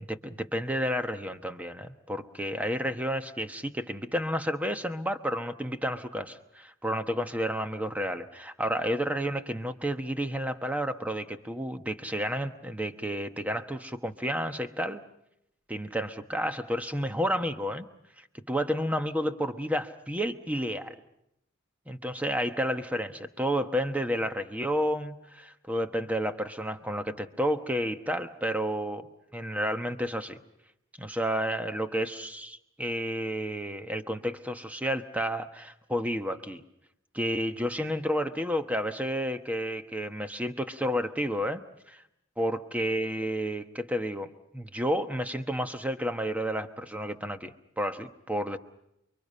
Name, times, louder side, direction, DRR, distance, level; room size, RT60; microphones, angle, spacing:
voice 1, 0.1-15.0 15.7-17.9 18.2-21.0 21.9-29.1 29.3-30.4 31.0-36.6 37.1-41.6 41.9-42.0 42.4-48.6, equal, 5° right, 8 dB, 1.1 m, -31 dB
29.5 x 23.5 x 5.5 m, 0.81 s
head